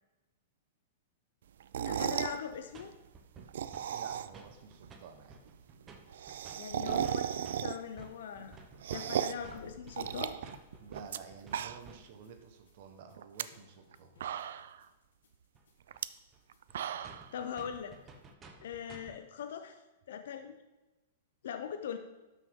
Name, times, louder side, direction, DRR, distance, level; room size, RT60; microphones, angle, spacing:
sound 1, 1.6-2.4 3.4-4.5 4.8-4.9 5.1-5.2 5.5-5.6 5.8-8.0 8.4-9.5 10.0-11.2 11.4-12.0 12.4-12.5 13.2-13.4 13.9-14.0 14.2-14.8 15.9-16.1 16.5-17.3, right 9 dB, 70° right, 0.4 m, -35 dB
voice 1, 1.8-2.9 6.3-8.6 8.9-10.3 17.0-18.0 18.6-19.8 20.1-20.6 21.4-22.0, left 8 dB, 70° left, 7 dB, 0.7 m, -41 dB
sound 2, 2.5-2.9 3.1-5.0 5.3-12.2 15.5-15.6 15.9-16.0 16.3-16.4 16.7-16.8 17.0-19.2, right 3 dB, 15° right, 0.8 m, -53 dB
voice 2, 3.9-5.4 10.8-14.2, right 6 dB, 45° right, 6 dB, 1.2 m, -52 dB
sound 3, 9.3-18.5, left 1 dB, 90° left, 2.1 m, -60 dB
12.0 x 6.2 x 3.7 m, 1.1 s
supercardioid pair, 165°, 0 cm